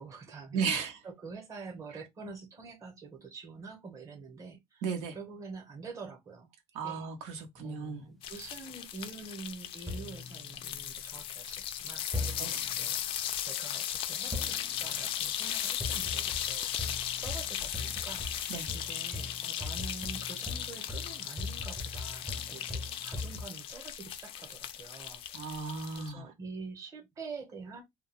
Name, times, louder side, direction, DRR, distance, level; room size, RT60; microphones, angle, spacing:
voice 1, 0.0-4.8 5.1-6.5 6.8-7.1 7.6-17.0 17.2-18.3 18.7-25.5 26.0-27.8, right 4 dB, 30° right, 1.0 m, -46 dB
voice 2, 0.5-1.0 4.8-5.2 6.7-8.0 12.4-12.5 18.5-18.7 25.3-26.2, right 5 dB, 90° right, 0.9 m, -35 dB
sound 1, 7.6-8.2 9.9-11.2 12.1-13.0 14.3-15.2 15.8-23.5, left 2 dB, ahead, 0.5 m, -41 dB
sound 2, 8.2-26.1, left 10 dB, 50° left, 0.4 m, -37 dB
2.3 x 2.2 x 3.2 m
cardioid pair, 160°, 11 cm